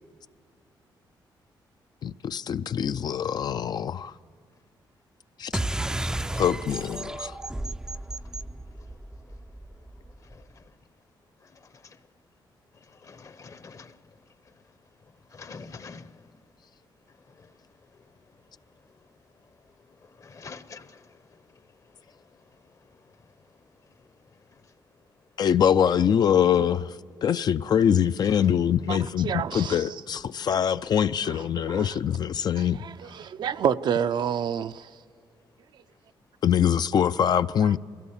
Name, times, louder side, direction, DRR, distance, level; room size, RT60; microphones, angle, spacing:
voice 1, 2.0-4.1 5.4-5.5 6.3-7.4 25.4-26.9 27.2-32.8 36.4-37.8, left 8 dB, 55° left, 0.4 m, -24 dB
sound 1, 5.5-10.4, right 1 dB, 10° right, 0.4 m, -33 dB
voice 2, 10.3-10.6 11.8-12.0 13.0-14.0 15.3-16.2 17.4-17.5 20.2-21.0 28.2-28.5, left 4 dB, 40° left, 0.8 m, -45 dB
voice 3, 29.2-29.9 31.2-31.9 32.6-34.9, right 8 dB, 65° right, 0.5 m, -29 dB
22.0 x 16.5 x 7.2 m
cardioid pair, 110°, 8 cm